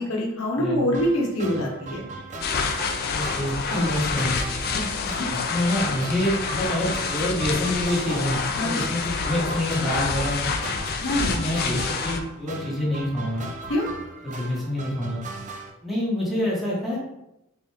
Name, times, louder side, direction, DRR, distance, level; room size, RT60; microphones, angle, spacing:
voice 1, 0.0-2.0 3.7-3.9 4.7-5.3 8.6-8.8 11.0-11.3 13.7-13.9, equal, 70° left, -1 dB, 0.9 m, -25 dB
voice 2, 0.6-0.9 3.1-4.5 5.3-10.7 11.3-13.5 14.2-15.2 15.8-17.0, left 1 dB, ahead, -6 dB, 1.1 m, -27 dB
sound 1, 0.9-15.7, right 3 dB, 35° right, 0.4 m, -38 dB
sound 2, 2.4-12.2, left 5 dB, 45° left, 0.4 m, -28 dB
4.0 x 3.2 x 3.3 m, 0.87 s
head